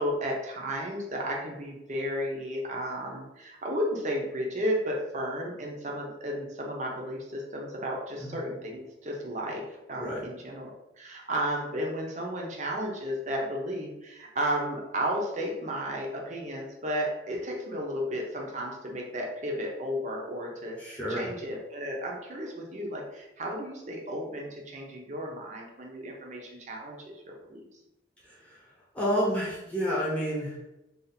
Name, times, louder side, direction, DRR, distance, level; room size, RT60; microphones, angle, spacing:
voice 1, 0.0-27.6, equal, 40° right, -1 dB, 0.6 m, -33 dB
voice 2, 20.8-21.3 28.2-30.6, equal, 5° left, -6 dB, 0.9 m, -30 dB
2.6 x 2.4 x 4.1 m, 0.93 s
head